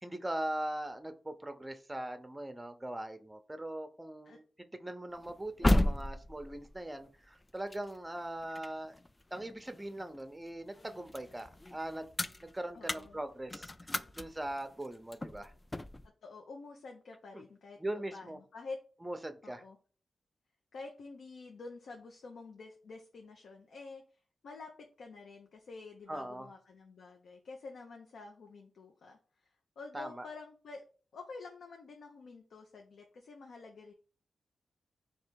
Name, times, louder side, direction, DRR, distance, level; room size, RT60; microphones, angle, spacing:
voice 1, 0.0-4.4 4.7-9.0 9.3-12.1 12.4-15.5 17.3-17.4 17.8-18.4 19.0-19.6 26.1-26.5 29.9-30.2, right 1 dB, 15° right, 9 dB, 0.6 m, -40 dB
sound 1, 5.1-10.2 10.6-16.1, left 1 dB, 25° left, 0.3 m, -35 dB
voice 2, 12.7-13.2 16.2-17.8 18.1-18.8 19.4-19.8 20.7-30.8 31.1-33.9, left 3 dB, 80° left, 2 dB, 0.5 m, -49 dB
3.2 x 2.9 x 4.6 m, 0.38 s
cardioid pair, 60°, 0 cm